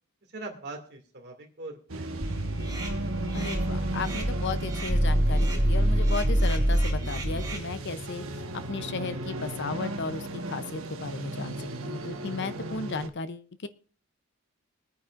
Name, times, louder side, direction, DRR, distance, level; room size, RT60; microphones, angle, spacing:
voice 1, 0.3-2.4, right 2 dB, 50° right, 1 dB, 2.3 m, -42 dB
sound 1, 1.9-13.1, right 2 dB, 65° right, 1.3 m, -36 dB
sound 2, 2.2-7.6, equal, 15° right, 4.3 m, -26 dB
voice 2, 3.3-8.2 8.7-13.7, left 4 dB, 50° left, 12 dB, 0.6 m, -35 dB
23.5 x 9.4 x 2.5 m, 0.40 s
head